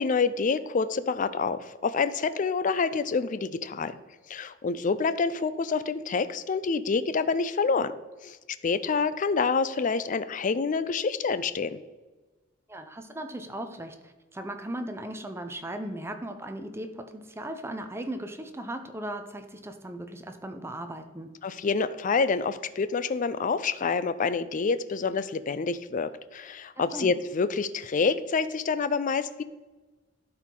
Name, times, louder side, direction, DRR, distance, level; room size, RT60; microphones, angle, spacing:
voice 1, 0.0-3.9 4.3-7.9 8.2-8.4 8.6-11.8 21.4-29.4, left 5 dB, 40° left, 14 dB, 0.4 m, -27 dB
voice 2, 12.7-21.3 26.8-27.1, right 1 dB, 15° right, 7 dB, 0.6 m, -37 dB
12.0 x 4.6 x 3.8 m, 1.3 s
head